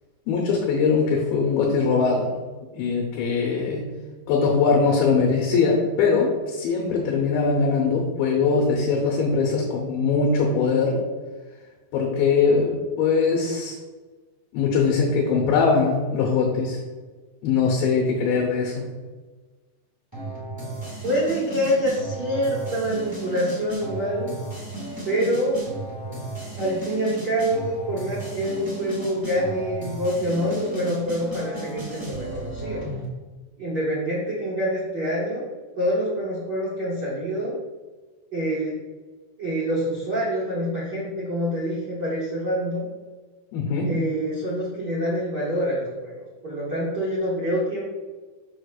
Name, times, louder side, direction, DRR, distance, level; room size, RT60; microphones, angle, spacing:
voice 1, 0.3-2.3 2.7-3.9 4.3-11.0 11.9-13.8 14.5-16.8 17.4-18.9 43.5-43.9, left 5 dB, 80° left, -1 dB, 2.7 m, -21 dB
sound 1, 20.1-33.0, right 1 dB, 35° right, 0.3 m, -34 dB
voice 2, 21.0-24.3 25.0-25.7 26.5-32.8 33.6-35.5 35.7-37.6 38.3-38.7 39.4-42.8 43.8-47.8, equal, 75° right, -8 dB, 0.9 m, -26 dB
7.1 x 6.5 x 2.4 m, 1.3 s
omnidirectional pair, 4.3 m